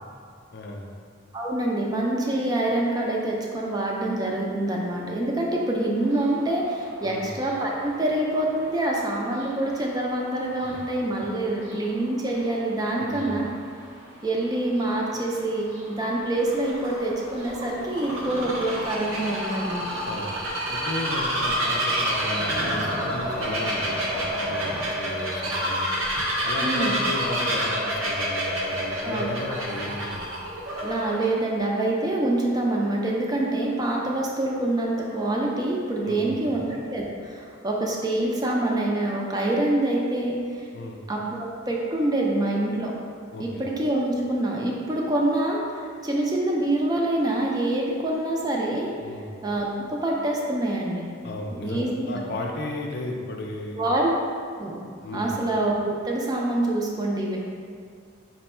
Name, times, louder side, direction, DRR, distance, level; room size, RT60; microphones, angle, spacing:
voice 1, 0.5-0.9 7.0-7.3 10.6-10.9 13.0-13.4 20.0-20.3 20.7-25.9 26.4-30.2 36.0-36.6 40.7-41.0 43.3-43.6 49.0-49.3 51.2-53.9 55.0-55.3, left 1 dB, 55° left, 1 dB, 0.4 m, -34 dB
voice 2, 1.3-13.5 14.2-19.9 26.6-27.0 29.0-29.3 30.8-40.7 41.1-42.9 43.4-48.9 49.4-51.1 51.5-52.2 53.8-54.1 54.6-54.8 55.1-57.4, right 1 dB, 20° right, -2 dB, 0.4 m, -26 dB
sound 1, 5.9-24.8, equal, 75° right, 1.3 m, -43 dB
Bird vocalization bird call bird song, 16.2-31.3, equal, 90° right, 0.7 m, -28 dB
4.1 x 2.2 x 4.2 m, 2.2 s
head